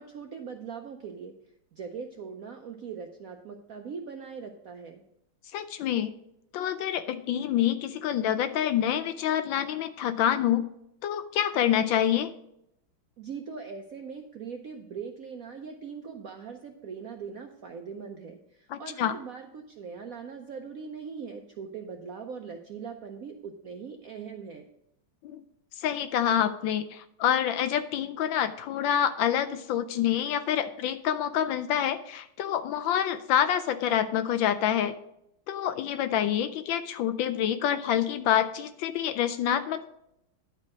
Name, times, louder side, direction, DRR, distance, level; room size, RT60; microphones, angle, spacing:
voice 1, 0.0-1.3 1.7-5.0 13.2-24.6, right 6 dB, 70° right, 4 dB, 0.8 m, -41 dB
voice 2, 5.5-6.1 6.5-10.7 11.0-12.3 18.7-19.1 25.2-25.4 25.8-34.9 35.5-39.9, left 10 dB, 75° left, 10 dB, 1.2 m, -27 dB
10.5 x 4.6 x 6.0 m, 0.78 s
omnidirectional pair, 2.3 m